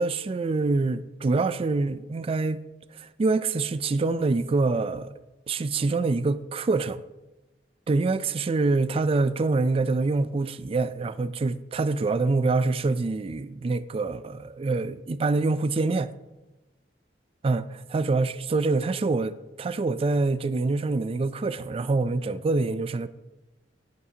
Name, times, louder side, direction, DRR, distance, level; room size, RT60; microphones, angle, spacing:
voice 1, 0.0-2.6 2.9-5.1 5.5-7.0 7.9-16.1 17.4-23.1, right 3 dB, 35° right, 0.3 m, -25 dB
10.5 x 9.6 x 2.8 m
head